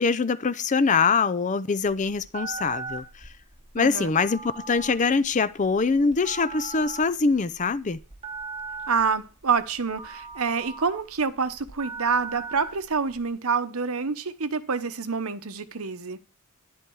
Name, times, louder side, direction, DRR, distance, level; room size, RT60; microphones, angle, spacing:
voice 1, 0.0-3.0 3.7-8.0, left 4 dB, 35° left, 0.5 m, -23 dB
Telephone, 1.8-13.2, right 4 dB, 25° right, 3.6 m, -39 dB
voice 2, 3.8-4.1 8.9-16.2, right 5 dB, 75° right, 1.0 m, -27 dB
11.0 x 10.5 x 4.7 m
head